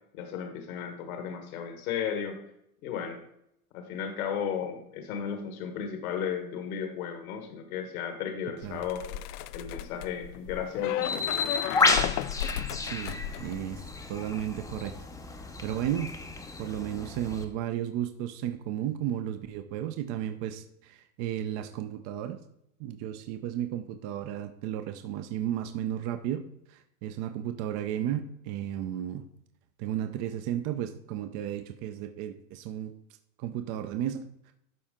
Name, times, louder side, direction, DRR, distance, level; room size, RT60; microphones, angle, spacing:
voice 1, 0.1-2.4 2.8-3.2 3.7-9.1 9.5-11.6, left 7 dB, 70° left, 6 dB, 1.5 m, -34 dB
sound 1, 8.6-14.2 14.5-14.8, left 12 dB, 85° left, 0.5 m, -34 dB
Bird, 11.0-17.4, left 3 dB, 5° left, 0.6 m, -31 dB
voice 2, 12.8-13.8 14.1-14.9 15.6-16.1 16.6-22.4 22.8-26.4 26.7-29.2 29.8-32.9 33.4-34.2, right 11 dB, 40° right, 8 dB, 0.6 m, -33 dB
12.0 x 4.3 x 3.7 m, 0.77 s
hypercardioid pair, 120°, 45 cm